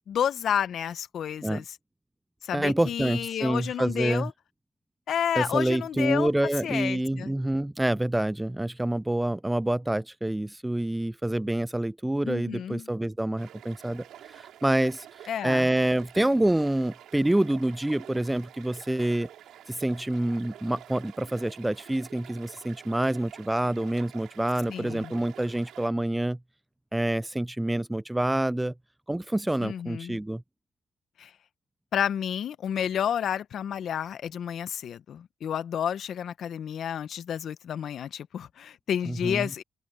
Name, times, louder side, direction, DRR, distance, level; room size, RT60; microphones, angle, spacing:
voice 1, 0.1-1.6 2.4-4.3 5.1-6.3 6.6-7.3 12.2-12.9 15.3-15.7 24.7-25.1 29.6-30.2 31.2-31.3 31.9-39.6, left 9 dB, 65° left, 1.0 m, -30 dB
voice 2, 2.5-4.3 5.3-19.3 19.7-26.4 26.9-28.7 29.1-30.4 39.0-39.5, right 1 dB, 10° right, 0.4 m, -27 dB
sound 1, 13.4-25.9, right 11 dB, 80° right, 4.5 m, -48 dB
open air
cardioid pair, 95°, 0 cm